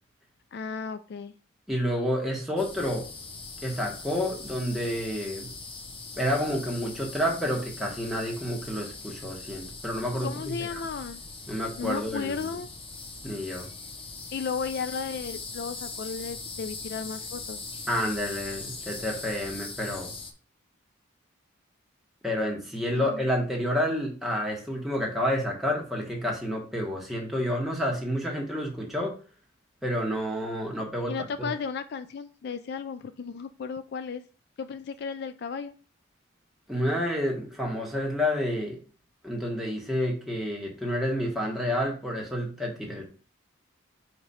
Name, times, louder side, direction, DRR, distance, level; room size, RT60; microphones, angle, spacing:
voice 1, 0.5-1.3 10.2-11.2 11.8-12.7 14.3-17.6 22.9-23.2 31.1-34.2 34.6-35.7, left 5 dB, 50° left, 11 dB, 0.3 m, -34 dB
voice 2, 1.7-3.1 3.6-5.5 6.2-10.8 11.5-12.5 13.2-13.7 17.9-20.1 22.2-29.1 29.8-31.5 36.7-38.8 39.2-43.0, equal, ahead, -2 dB, 1.3 m, -29 dB
sound 1, 2.6-20.3, left 3 dB, 25° left, 0.7 m, -41 dB
5.0 x 4.7 x 4.2 m, 0.38 s
head